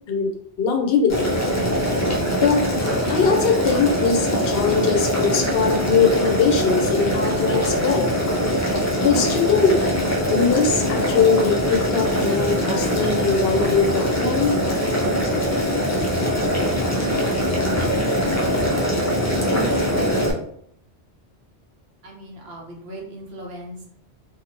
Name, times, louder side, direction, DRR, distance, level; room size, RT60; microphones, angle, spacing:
voice 1, 0.1-1.3 2.4-2.6 3.1-8.1 9.0-9.8 10.3-14.6, left 5 dB, 70° left, 3 dB, 0.8 m, -21 dB
Boiling, 1.1-20.3, equal, 25° left, 0.4 m, -22 dB
voice 2, 19.4-20.2 22.0-23.9, right 2 dB, 70° right, -1 dB, 1.0 m, -37 dB
2.7 x 2.5 x 2.9 m, 0.67 s
omnidirectional pair, 1.1 m